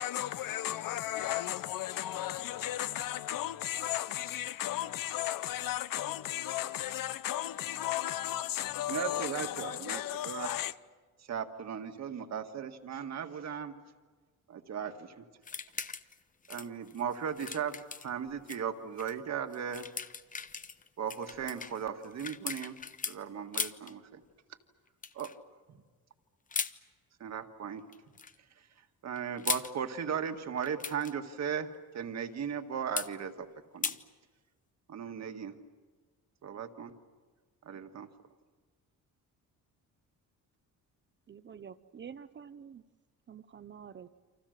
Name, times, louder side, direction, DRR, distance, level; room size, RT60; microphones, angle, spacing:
voice 1, 0.0-10.7, left 13 dB, 75° left, 0.9 m, -35 dB
voice 2, 8.9-10.5 11.3-13.7 14.5-15.2 16.5-19.9 21.0-22.8 23.1-24.2 25.1-25.3 27.2-27.8 29.0-31.7 31.9-33.5 33.7-34.0 34.9-35.5 36.4-36.9 37.6-38.1, right 7 dB, 55° right, 1.8 m, -37 dB
sound 1, 15.4-16.2 16.4-18.6 19.0-19.1 19.5-23.2 23.5-23.9 25.0-25.3 26.5-26.7 27.9-28.3 29.2-29.7 30.6-31.1 33.0-33.1 33.8-34.0, left 5 dB, 25° left, 0.8 m, -38 dB
voice 3, 41.3-42.8 43.3-44.1, right 7 dB, 35° right, 0.7 m, -48 dB
29.0 x 26.5 x 6.6 m
cardioid pair, 160°, 33 cm